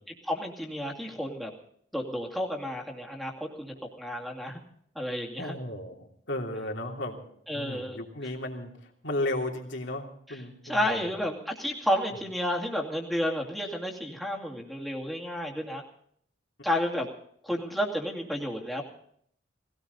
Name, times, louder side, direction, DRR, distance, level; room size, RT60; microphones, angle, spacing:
voice 1, 0.2-1.5 1.9-4.6 4.9-5.6 7.5-8.0 10.3-15.8 16.6-17.1 17.4-18.8, equal, ahead, -1 dB, 2.4 m, -31 dB
voice 2, 5.4-7.2 7.5-8.7 9.0-11.1, left 1 dB, 70° left, 1 dB, 3.0 m, -34 dB
20.0 x 17.0 x 4.0 m, 0.65 s
head